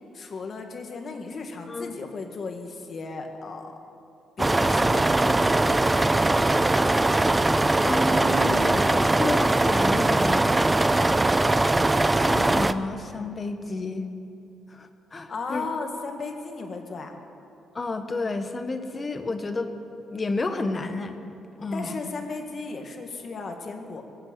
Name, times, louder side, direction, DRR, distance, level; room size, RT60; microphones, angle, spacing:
voice 1, 0.1-3.8 4.4-6.6 15.3-17.1 21.7-24.0, left 4 dB, 50° left, 4 dB, 1.9 m, -36 dB
sound 1, 4.4-12.7, right 2 dB, 15° right, 0.5 m, -21 dB
voice 2, 7.8-10.7 12.1-14.1 14.7-15.7 17.7-19.7 20.1-21.2 21.6-22.0, left 2 dB, 30° left, 7 dB, 1.4 m, -31 dB
21.0 x 7.9 x 8.3 m, 2.7 s
cardioid pair, 90°, 0 cm